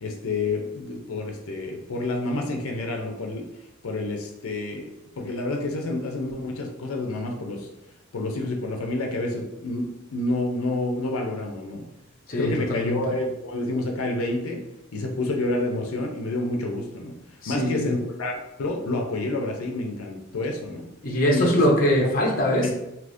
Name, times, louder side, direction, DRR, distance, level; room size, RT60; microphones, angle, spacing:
voice 1, 0.0-3.5 3.8-4.9 5.2-7.7 8.1-11.8 12.4-14.6 14.9-17.1 17.5-20.9 21.3-21.5 22.6-22.7, left 2 dB, 85° left, 2 dB, 0.5 m, -28 dB
voice 2, 12.3-13.0 17.4-17.9 21.0-22.7, equal, 40° left, -1 dB, 0.6 m, -22 dB
3.4 x 2.8 x 2.6 m, 0.91 s
head